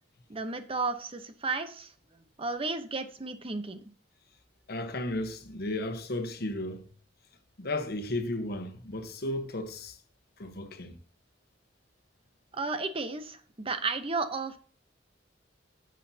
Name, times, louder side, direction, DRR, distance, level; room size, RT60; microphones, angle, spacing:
voice 1, 0.3-1.9 2.4-3.8 12.5-14.6, right 3 dB, 30° right, 0.8 m, -33 dB
voice 2, 4.7-6.8 7.6-10.0 10.4-11.0, left 1 dB, 55° left, 1.1 m, -34 dB
11.5 x 7.5 x 2.8 m
head